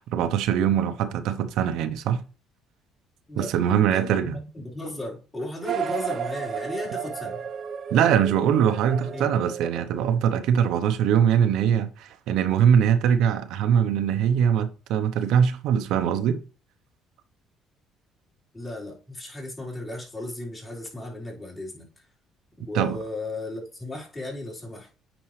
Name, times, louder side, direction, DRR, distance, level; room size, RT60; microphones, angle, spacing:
voice 1, 0.1-2.2 3.4-4.4 7.9-16.4 22.7-23.0, right 8 dB, 80° right, 0.8 m, -22 dB
voice 2, 3.9-7.4 9.0-9.3 18.5-21.9 22.7-24.9, left 2 dB, 25° left, 4.1 m, -35 dB
sound 1, 5.6-10.4, right 7 dB, 50° right, 0.8 m, -33 dB
9.0 x 5.3 x 3.2 m
cardioid pair, 105°, 0 cm